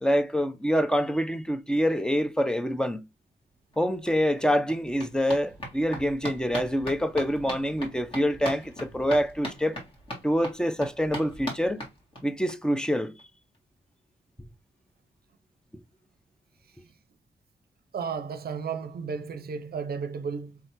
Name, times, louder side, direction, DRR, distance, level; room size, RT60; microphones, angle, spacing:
voice 1, 0.0-3.0 3.8-9.8 10.2-11.8 12.2-13.1, equal, 5° left, 0.6 m, -26 dB
sound 1, 3.7-3.8 4.1-12.5 12.8-12.9 13.2-13.3 13.5-13.6, equal, 30° left, 2.0 m, -40 dB
voice 2, 17.9-20.6, right 6 dB, 60° right, 0.6 m, -33 dB
4.8 x 3.3 x 2.9 m
wide cardioid pair, 95°, 18 cm